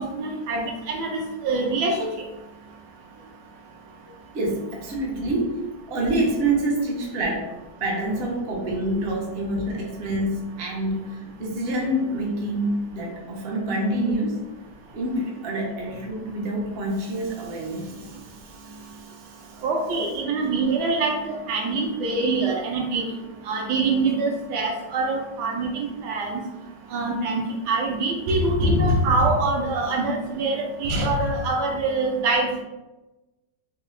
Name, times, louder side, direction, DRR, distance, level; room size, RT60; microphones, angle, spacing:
voice 1, 0.0-2.1 19.6-23.0 23.5-26.4 26.9-32.6, right 2 dB, 75° right, 0 dB, 1.1 m, -24 dB
voice 2, 4.3-5.6 5.9-7.5 7.8-14.5 14.9-19.6, right 1 dB, 55° right, -2 dB, 0.7 m, -27 dB
3.6 x 2.3 x 3.1 m, 1.1 s
omnidirectional pair, 1.9 m